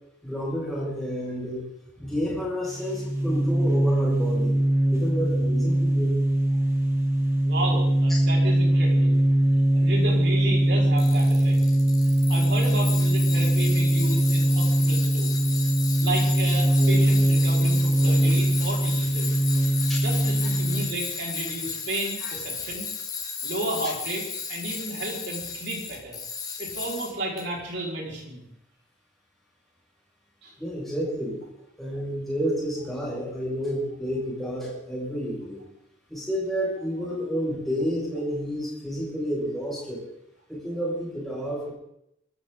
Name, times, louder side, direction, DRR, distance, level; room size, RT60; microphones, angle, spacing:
voice 1, 0.2-1.7 2.0-4.6 4.9-6.2 8.1-8.2 19.9-20.0 22.2-22.3 30.6-31.4 31.8-35.6 36.1-40.0 40.5-41.7, equal, ahead, -6 dB, 6.5 m, -30 dB
sound 1, 2.6-20.9, right 1 dB, 15° right, 2.6 m, -22 dB
voice 2, 7.4-9.2 9.7-11.6 12.3-15.3 16.0-19.3 20.0-22.9 23.4-26.2 26.6-28.5 30.4-30.5, right 1 dB, 65° right, -2 dB, 5.3 m, -33 dB
Tools, 11.0-27.4, left 5 dB, 20° left, 1.6 m, -34 dB
23.5 x 13.5 x 4.0 m, 0.77 s
head